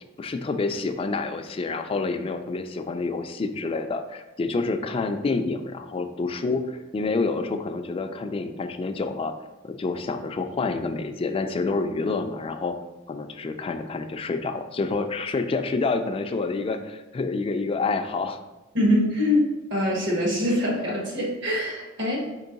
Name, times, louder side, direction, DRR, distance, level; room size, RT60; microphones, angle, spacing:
voice 1, 0.2-9.3 9.6-12.8 13.1-18.4, left 3 dB, 25° left, 7 dB, 0.3 m, -28 dB
voice 2, 18.7-22.3, left 1 dB, 60° right, -2 dB, 1.4 m, -24 dB
4.5 x 2.9 x 3.9 m, 1.1 s
head